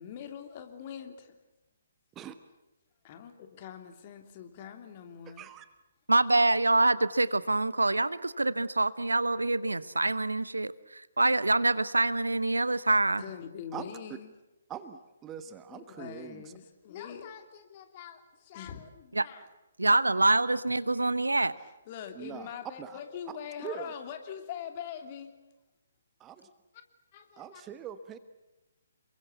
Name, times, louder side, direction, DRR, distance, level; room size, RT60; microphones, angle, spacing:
voice 1, 0.0-1.4 3.0-5.5 13.2-14.3 15.7-19.5 21.9-25.3 27.1-27.6, left 8 dB, 30° left, 6 dB, 3.0 m, -43 dB
voice 2, 5.3-5.7 13.7-13.9 14.7-16.5 22.1-23.0 23.6-23.9 26.2-26.4 27.4-28.2, right 9 dB, 15° right, 11 dB, 1.3 m, -42 dB
voice 3, 6.1-13.2 19.1-19.2 19.8-21.5, right 2 dB, 75° right, 17 dB, 1.0 m, -26 dB
28.5 x 23.0 x 8.3 m, 0.99 s
figure-of-eight pair, 135°, 0 cm